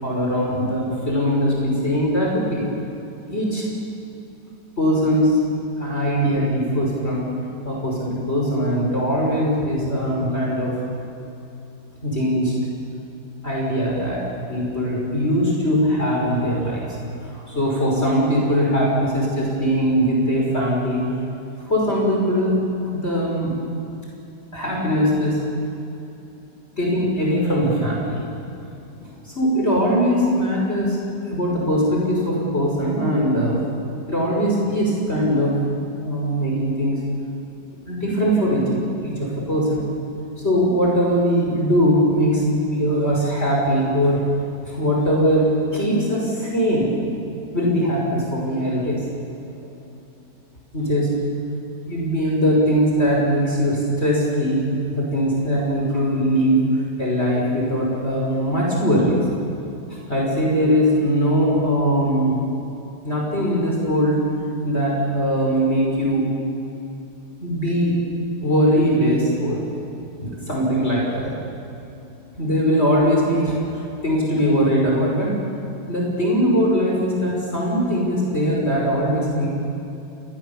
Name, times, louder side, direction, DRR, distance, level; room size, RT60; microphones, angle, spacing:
voice 1, 0.0-2.6 3.3-3.6 4.8-5.4 5.8-7.3 7.6-10.7 12.0-12.5 13.4-14.2 14.5-16.8 17.5-21.1 21.7-22.6 22.9-23.5 24.5-25.4 26.8-28.2 29.3-31.0 31.3-33.6 34.1-35.5 36.0-37.0 37.9-39.8 40.4-44.2 44.7-47.0 47.5-49.0 50.7-51.1 51.9-56.6 57.0-59.2 60.1-62.4 63.0-64.2 64.6-66.3 67.4-67.9 68.4-69.6 70.2-71.4 72.4-73.5 74.0-75.4 75.9-79.5, equal, 40° left, -3 dB, 6.0 m, -21 dB
30.0 x 23.0 x 7.2 m, 2.9 s
omnidirectional pair, 1.7 m